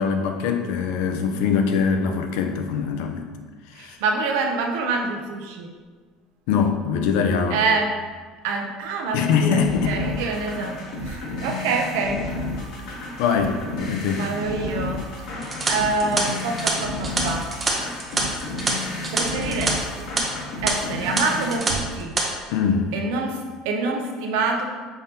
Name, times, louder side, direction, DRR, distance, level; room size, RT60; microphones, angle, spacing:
voice 1, 0.0-3.3 3.7-4.0 6.5-7.6 9.1-10.0 12.9-14.3 22.5-22.9, left 6 dB, 75° left, 5 dB, 0.5 m, -23 dB
voice 2, 3.7-5.7 7.5-8.0 8.4-9.6 9.9-12.3 14.2-17.5 19.1-20.1 20.6-22.2 22.9-24.7, right 4 dB, 85° right, 3 dB, 0.6 m, -26 dB
sound 1, 9.6-21.6, left 2 dB, 55° left, 1.0 m, -31 dB
sound 2, 15.4-19.7 20.0-20.2 20.7-20.8 21.2-21.7 22.0-22.2, right 3 dB, 15° right, 0.6 m, -26 dB
5.5 x 3.5 x 2.8 m, 1.5 s
cardioid pair, 165°, 0 cm